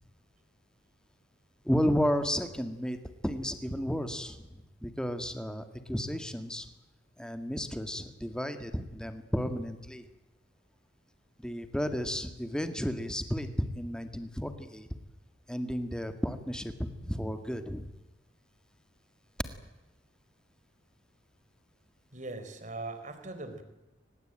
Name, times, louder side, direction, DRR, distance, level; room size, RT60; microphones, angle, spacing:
voice 1, 1.7-3.0 3.2-4.4 4.8-6.6 7.2-10.0 11.4-13.5 13.8-14.9 15.5-17.9, equal, 5° left, 8 dB, 1.9 m, -32 dB
voice 2, 22.1-23.6, right 2 dB, 40° right, 8 dB, 4.0 m, -40 dB
24.0 x 20.0 x 9.1 m, 1.0 s
head